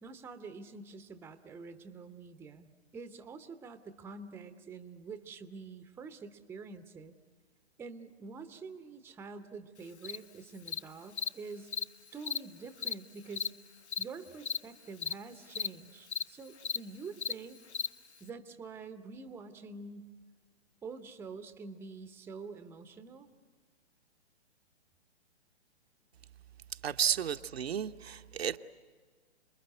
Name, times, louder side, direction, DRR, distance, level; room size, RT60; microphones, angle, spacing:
voice 1, 0.0-7.1 7.8-11.7 12.1-13.5 14.0-17.6 18.2-20.1 20.8-23.3, right 4 dB, 5° right, 9 dB, 0.8 m, -46 dB
Cricket, 10.0-10.2 10.7-10.8 11.2-11.3 11.7-11.8 12.2-12.4 12.8-12.9 13.3-13.5 13.9-14.0 14.4-14.6 15.0-15.1 15.5-15.7 16.1-16.2 16.6-16.8 17.2-17.3 17.7-17.9, left 6 dB, 80° left, 0.9 m, -34 dB
voice 2, 26.8-28.6, right 9 dB, 65° right, 8 dB, 1.0 m, -32 dB
27.5 x 21.0 x 9.5 m, 1.5 s
figure-of-eight pair, 125°, 33 cm